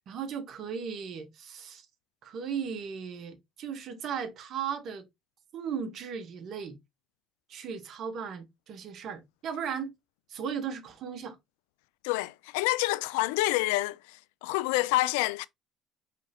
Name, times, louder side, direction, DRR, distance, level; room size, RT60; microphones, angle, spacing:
voice 1, 0.1-1.9 2.2-5.1 5.5-6.8 7.5-9.9 10.3-11.4, right 7 dB, 60° right, 1.0 m, -36 dB
voice 2, 12.0-14.0 14.4-15.5, left 18 dB, 85° left, 0.3 m, -27 dB
4.6 x 3.3 x 2.8 m
hypercardioid pair, 70°, 0 cm